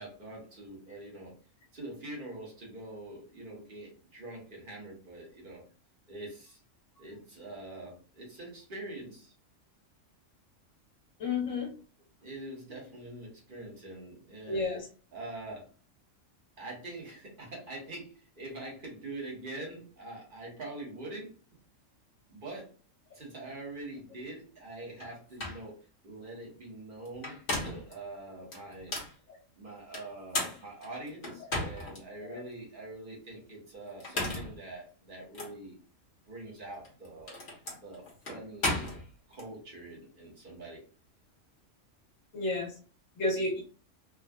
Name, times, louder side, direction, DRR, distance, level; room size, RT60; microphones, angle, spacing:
voice 1, 0.0-1.4 1.7-5.6 6.1-6.6 7.0-9.3 12.2-14.6 15.1-15.7 16.6-21.4 22.3-22.7 23.1-25.8 26.0-28.9 29.6-35.8 36.2-37.4 37.7-38.9 39.3-40.8, right 2 dB, 45° right, -2 dB, 1.2 m, -44 dB
voice 2, 11.2-11.7 14.4-14.9 32.2-32.4 42.3-42.7 43.2-43.6, left 3 dB, 75° left, -2 dB, 1.4 m, -31 dB
sound 1, 25.0-25.1 25.4-25.6 27.1-27.9 28.5-29.1 29.9-32.0 32.5-32.6 33.9-34.6 35.3-35.5 36.7-39.5, left 2 dB, 55° left, 1.3 m, -35 dB
3.5 x 2.3 x 2.2 m, 0.37 s
omnidirectional pair, 1.3 m